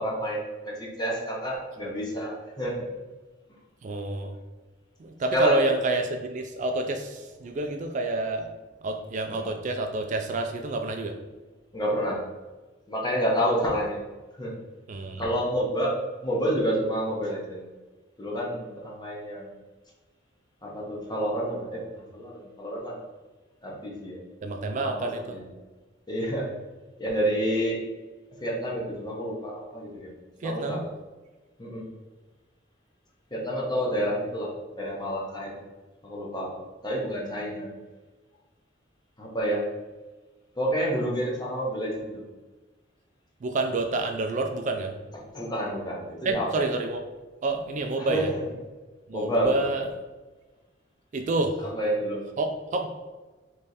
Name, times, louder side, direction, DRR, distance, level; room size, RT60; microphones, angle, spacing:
voice 1, 0.0-2.9 5.3-5.7 9.3-9.5 11.7-12.2 12.9-14.0 14.4-14.5 15.2-16.0 16.2-17.6 18.2-19.5 20.6-21.8 22.1-23.0 23.6-24.2 24.8-25.4 26.1-26.5 27.0-27.8 28.4-30.1 30.4-30.8 31.6-31.8 33.3-34.5 34.8-35.5 36.0-37.7 39.2-39.7 40.6-42.2 45.1-46.7 48.0-48.4 49.1-49.7 51.7-52.2, equal, 25° left, -3 dB, 1.0 m, -29 dB
voice 2, 3.8-4.4 5.0-8.5 8.8-11.2 14.9-15.2 24.4-25.2 30.4-30.8 43.4-45.0 46.2-47.0 47.4-48.3 49.1-49.8 51.1-51.6 52.4-52.9, right 2 dB, 40° right, 4 dB, 0.3 m, -28 dB
3.5 x 3.2 x 4.1 m, 1.2 s
head